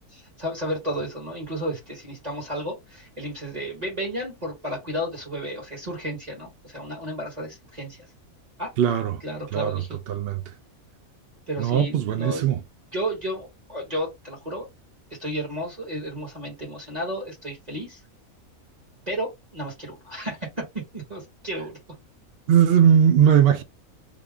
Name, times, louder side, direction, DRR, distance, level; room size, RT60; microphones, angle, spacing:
voice 1, 0.1-8.0 8.6-8.7 9.2-10.0 11.5-12.5 12.9-14.7 15.2-18.0 19.1-21.8, equal, 30° right, 1.4 m, -32 dB
voice 2, 8.8-9.2 9.5-9.8 10.1-10.4 11.6-12.6 22.5-23.6, right 9 dB, 65° right, 0.6 m, -19 dB
3.6 x 2.4 x 3.5 m
omnidirectional pair, 1.5 m